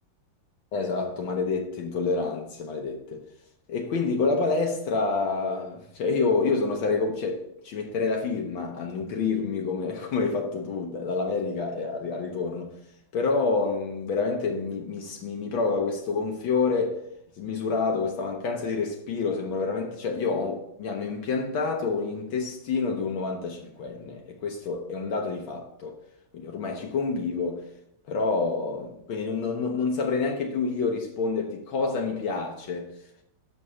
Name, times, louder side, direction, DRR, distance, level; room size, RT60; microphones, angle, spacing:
voice 1, 0.7-3.2 3.7-12.7 13.1-17.0 17.4-26.0 26.3-27.7 28.1-32.9, left 4 dB, 75° left, 1.6 m, -28 dB
6.7 x 5.5 x 6.1 m
omnidirectional pair, 2.3 m